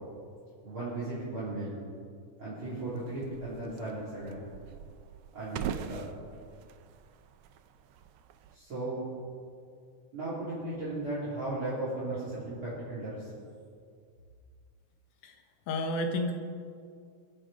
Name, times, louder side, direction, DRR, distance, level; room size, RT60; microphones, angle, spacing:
voice 1, 0.6-1.8 2.4-4.5 5.3-6.0 8.5-9.1 10.1-13.3, right 2 dB, 40° right, -10 dB, 4.6 m, -36 dB
sound 1, 2.6-8.6, right 9 dB, 85° right, 1.3 m, -44 dB
voice 2, 15.7-16.3, left 1 dB, 80° left, 3 dB, 2.6 m, -30 dB
24.5 x 8.7 x 5.2 m, 2.2 s
omnidirectional pair, 3.5 m